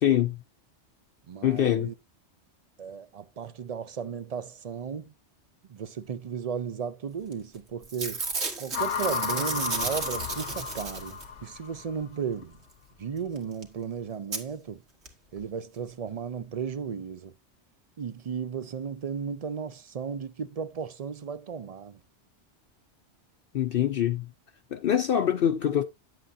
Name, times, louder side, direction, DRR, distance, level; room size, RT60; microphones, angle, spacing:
voice 1, 0.0-0.4 1.4-1.9 23.5-24.3 24.7-25.8, left 10 dB, 60° left, 0.7 m, -24 dB
voice 2, 1.3-1.9 2.8-5.1 5.6-8.2 8.6-12.6 13.0-14.8 15.3-17.3 18.0-22.0, right 7 dB, 50° right, 0.5 m, -35 dB
Packing tape duct tape / Tearing, 7.3-7.6 7.8-11.4 13.4-13.5 13.6-13.7 14.3-14.4 15.1-15.2 15.4-15.5, right 3 dB, 70° right, 1.9 m, -33 dB
sound 1, 8.7-12.0, left 7 dB, 85° left, 1.2 m, -33 dB
9.8 x 7.7 x 2.6 m
omnidirectional pair, 1.2 m